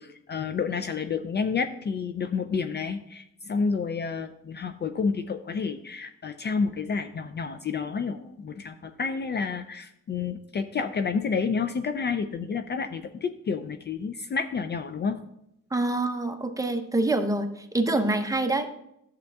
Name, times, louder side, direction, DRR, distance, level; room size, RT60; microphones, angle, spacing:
voice 1, 0.0-15.2, left 5 dB, 35° left, 9 dB, 0.4 m, -30 dB
voice 2, 15.7-18.7, right 2 dB, 10° right, 6 dB, 0.8 m, -26 dB
11.5 x 7.4 x 2.4 m, 0.80 s
cardioid pair, 90°, 30 cm